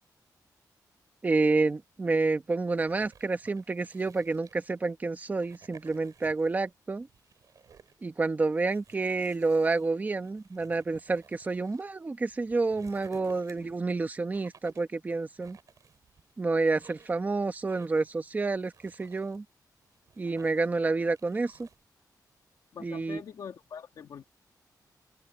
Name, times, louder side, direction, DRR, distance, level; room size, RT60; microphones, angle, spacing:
voice 1, 1.2-7.1 8.0-15.6 16.4-19.4 20.2-21.7 22.8-23.2, right 3 dB, 25° right, 1.0 m, -29 dB
sound 1, 2.7-4.9 5.3-6.7 7.0-8.0 8.6-11.8 12.3-13.8 14.3-15.0 15.4-16.3 16.7-17.2 17.7-18.1 18.5-19.4 19.8-20.8 21.2-21.8, right 6 dB, 55° right, 5.9 m, -57 dB
voice 2, 22.7-24.2, left 7 dB, 70° left, 1.8 m, -44 dB
wide cardioid pair, 165°, 7 cm